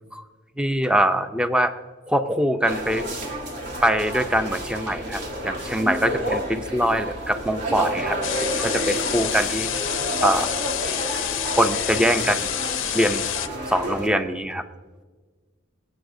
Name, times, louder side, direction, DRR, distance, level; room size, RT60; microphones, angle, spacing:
voice 1, 0.6-1.7 2.1-3.0 3.8-8.2 8.6-9.7 10.2-10.6 11.5-12.4 12.9-13.2 13.7-14.6, equal, 5° right, 9 dB, 0.5 m, -23 dB
sound 1, 2.7-14.1, right 1 dB, 55° right, 1.6 m, -30 dB
sound 2, 8.2-13.5, left 13 dB, 65° left, 0.5 m, -28 dB
17.5 x 8.8 x 2.6 m, 1.4 s
head